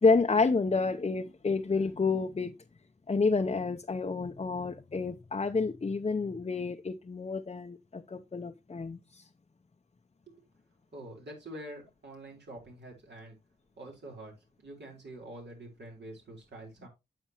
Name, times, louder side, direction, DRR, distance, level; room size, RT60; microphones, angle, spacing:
voice 1, 0.0-2.5 3.1-9.3, left 4 dB, 35° left, 0.8 m, -29 dB
voice 2, 10.9-13.4 13.8-16.9, right 1 dB, 70° right, 4.4 m, -46 dB
9.1 x 7.4 x 3.0 m
cardioid pair, 45°, 19 cm